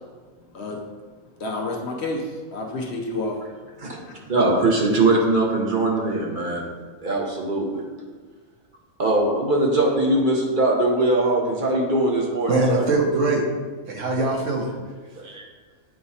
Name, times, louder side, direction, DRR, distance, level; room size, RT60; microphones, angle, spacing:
voice 1, 1.4-3.4 4.0-4.1, left 2 dB, 60° left, 1 dB, 1.0 m, -29 dB
voice 2, 4.3-6.6 7.0-7.8 9.0-12.8, right 2 dB, 40° right, -2 dB, 1.0 m, -21 dB
voice 3, 12.5-13.5 13.9-14.7 15.2-15.4, right 2 dB, 65° right, 0 dB, 1.4 m, -22 dB
8.8 x 3.0 x 4.1 m, 1.4 s
omnidirectional pair, 1.4 m